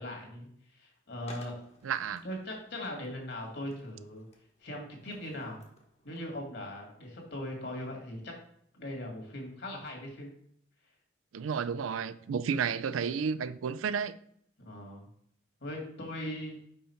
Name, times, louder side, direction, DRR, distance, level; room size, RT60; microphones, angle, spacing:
voice 1, 0.0-1.5 2.2-4.2 4.6-5.6 6.0-8.4 8.7-10.3 14.6-15.1 15.6-16.6, left 1 dB, 55° left, 2.0 m, -40 dB
Skateboard, 1.2-6.7, left 2 dB, 30° left, 1.1 m, -58 dB
voice 2, 1.8-2.2 11.3-14.2, right 6 dB, 90° right, 0.4 m, -32 dB
5.5 x 5.0 x 4.4 m
head